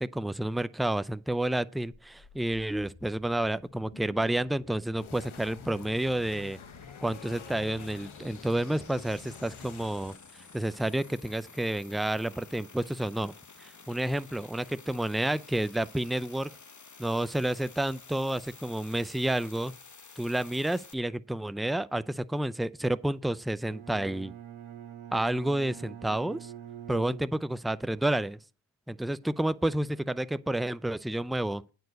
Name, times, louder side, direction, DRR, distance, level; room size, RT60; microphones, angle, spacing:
voice 1, 0.0-6.6 7.0-13.3 13.6-16.5 17.0-19.7 20.2-24.3 25.1-26.5 26.9-28.4 28.9-31.6, right 1 dB, ahead, 0.4 m, -30 dB
sound 1, 1.8-20.9, left 4 dB, 40° left, 1.2 m, -52 dB
sound 2, 5.0-10.2, left 7 dB, 85° left, 1.0 m, -48 dB
Bowed string instrument, 23.6-27.8, right 10 dB, 90° right, 1.3 m, -45 dB
9.3 x 4.7 x 7.6 m
cardioid pair, 45°, 47 cm